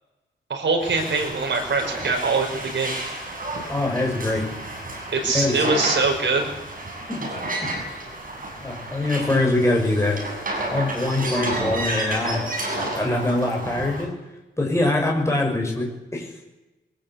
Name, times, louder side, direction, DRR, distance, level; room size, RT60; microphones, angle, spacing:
voice 1, 0.5-2.9 5.1-6.4, right 3 dB, 65° right, 3 dB, 5.6 m, -23 dB
sound 1, 0.8-14.0, right 1 dB, 45° right, 7.6 m, -31 dB
voice 2, 3.7-4.4 5.3-5.7 7.1-7.3 8.6-10.2 10.7-12.4 12.8-14.1 14.6-16.3, left 2 dB, 15° left, 0 dB, 6.6 m, -23 dB
23.0 x 21.0 x 8.4 m, 1.0 s
wide cardioid pair, 160°, 20 cm